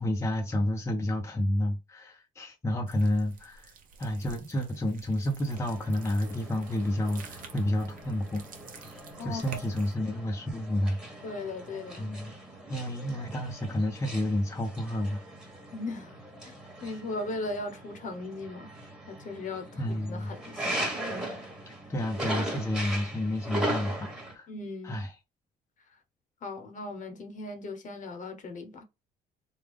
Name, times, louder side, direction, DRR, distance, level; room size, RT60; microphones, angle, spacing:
voice 1, 0.0-3.7 4.0-8.4 9.2-11.0 12.0-12.3 12.7-15.2 19.8-20.4 21.7-24.5 24.8-25.1, left 1 dB, 15° left, 0.7 m, -30 dB
sound 1, 2.9-9.9, right 5 dB, 55° right, 0.9 m, -50 dB
sound 2, 5.5-24.3, right 1 dB, 5° right, 1.3 m, -39 dB
voice 2, 9.2-9.6 11.2-12.1 15.7-16.2 16.4-16.5 16.8-18.7 19.1-20.9 24.5-25.0 25.9-26.0 26.4-28.8, left 2 dB, 50° left, 1.0 m, -38 dB
3.6 x 2.3 x 3.4 m
cardioid pair, 110°, 17 cm